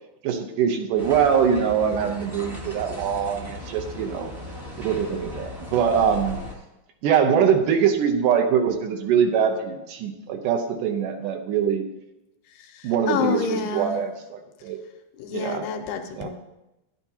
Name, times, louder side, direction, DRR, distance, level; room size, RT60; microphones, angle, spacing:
voice 1, 0.2-4.3 4.8-6.4 7.0-11.8 12.8-14.8 15.3-15.7 16.2-16.3, right 7 dB, 75° right, 5 dB, 2.1 m, -23 dB
sound 1, 1.0-6.5, left 1 dB, 45° right, 0.7 m, -37 dB
voice 2, 12.5-14.0 15.2-16.3, left 6 dB, 80° left, 6 dB, 2.0 m, -28 dB
12.0 x 10.5 x 2.8 m, 0.95 s
omnidirectional pair, 4.2 m